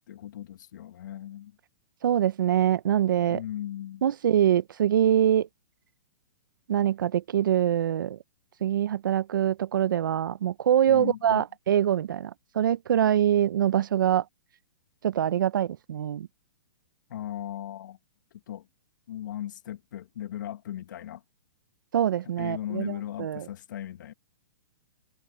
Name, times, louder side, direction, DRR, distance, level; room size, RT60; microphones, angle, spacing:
voice 1, 0.1-1.6 3.2-4.0 10.9-11.4 17.1-18.0 18.3-18.7 19.1-21.2 22.4-24.1, left 12 dB, 65° left, 2.2 m, -37 dB
voice 2, 2.0-3.4 4.0-5.5 6.7-8.2 8.6-14.2 15.0-16.3 21.9-23.5, right 10 dB, 75° right, 0.9 m, -24 dB
hypercardioid pair, 145°, 11 cm